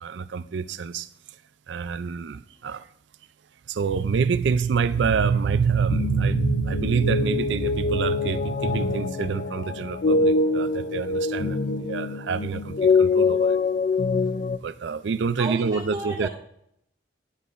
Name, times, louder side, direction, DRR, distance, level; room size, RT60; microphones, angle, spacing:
voice 1, 0.0-1.1 1.7-2.9 3.7-13.6 14.6-16.3, right 5 dB, 65° right, 0.4 m, -26 dB
sound 1, 5.9-14.6, left 3 dB, 45° left, 0.3 m, -24 dB
voice 2, 15.4-16.3, right 2 dB, 15° right, 0.7 m, -32 dB
11.5 x 10.0 x 2.5 m
head